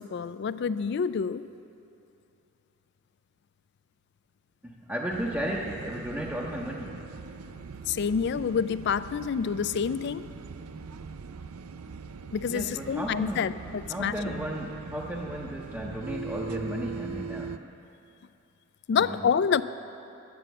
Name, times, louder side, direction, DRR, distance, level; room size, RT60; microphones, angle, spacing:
voice 1, 0.0-1.5 7.9-10.3 12.3-14.4 18.9-19.6, left 6 dB, 50° left, 14 dB, 0.3 m, -28 dB
voice 2, 4.6-7.1 12.5-13.6 13.9-17.7 19.0-19.2, equal, 10° right, -4 dB, 0.7 m, -34 dB
sound 1, 5.1-17.6, right 5 dB, 85° right, 0.5 m, -41 dB
11.5 x 9.3 x 7.8 m, 2.7 s
head